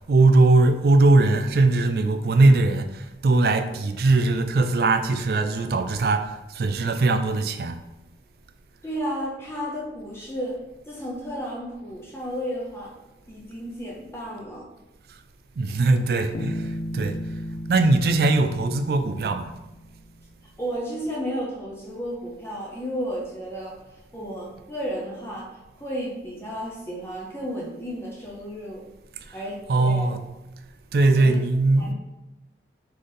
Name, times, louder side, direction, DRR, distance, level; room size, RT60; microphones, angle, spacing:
voice 1, 0.1-7.8 15.6-17.2 17.7-19.5 29.7-30.2 30.9-31.9, right 2 dB, 55° right, 8 dB, 0.3 m, -20 dB
voice 2, 8.8-10.6 10.9-12.9 13.3-14.7 20.6-25.5 25.8-28.8 29.3-30.2 31.1-31.4 31.7-31.9, equal, 15° left, -4 dB, 0.6 m, -33 dB
Bass guitar, 16.3-20.1, left 1 dB, 65° left, 0.4 m, -35 dB
3.9 x 3.8 x 3.3 m, 1.0 s
head